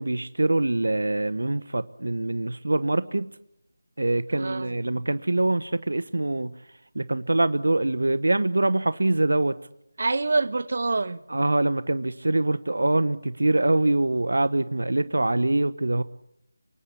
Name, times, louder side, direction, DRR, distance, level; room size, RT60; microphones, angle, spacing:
voice 1, 0.0-3.3 4.0-6.5 6.9-9.6 11.3-16.0, right 2 dB, 80° right, 1.0 m, -24 dB
voice 2, 4.3-4.8 10.0-11.2, right 3 dB, 60° right, 1.3 m, -26 dB
25.5 x 24.0 x 8.5 m
figure-of-eight pair, 170°, 0 cm